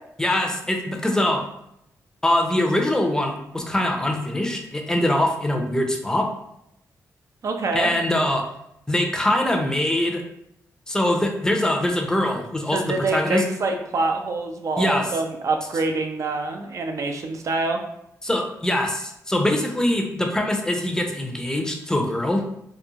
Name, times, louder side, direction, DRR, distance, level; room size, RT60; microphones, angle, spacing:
voice 1, 0.2-1.4 2.2-6.3 7.7-8.4 8.9-10.2 10.9-13.4 14.8-15.1 18.2-22.4, left 1 dB, 10° left, 2 dB, 0.5 m, -23 dB
voice 2, 7.4-7.9 12.7-17.8, right 3 dB, 55° right, 4 dB, 0.4 m, -25 dB
2.9 x 2.1 x 2.3 m, 0.78 s
cardioid pair, 60°, 6 cm